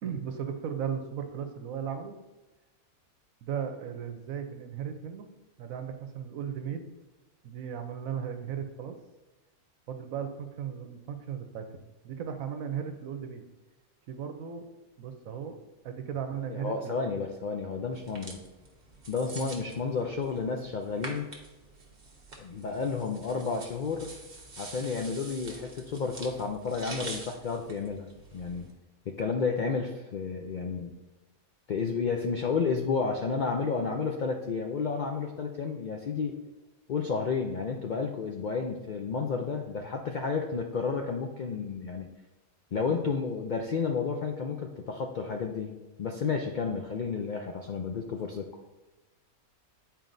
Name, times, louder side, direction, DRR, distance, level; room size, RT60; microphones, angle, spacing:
voice 1, 0.0-2.2 3.4-5.3 5.6-6.9 7.4-9.0 9.9-11.8 12.0-13.4 14.1-14.6 15.0-17.2, right 8 dB, 75° right, 6 dB, 1.1 m, -36 dB
voice 2, 16.5-18.4 19.1-21.3 22.4-24.1 24.6-28.7 29.1-30.9 31.7-36.4 36.9-42.1 42.7-48.5, left 5 dB, 85° left, 3 dB, 0.4 m, -31 dB
sound 1, 17.9-28.7, right 3 dB, 35° right, 1.0 m, -46 dB
9.0 x 4.5 x 2.6 m, 1.1 s
omnidirectional pair, 1.5 m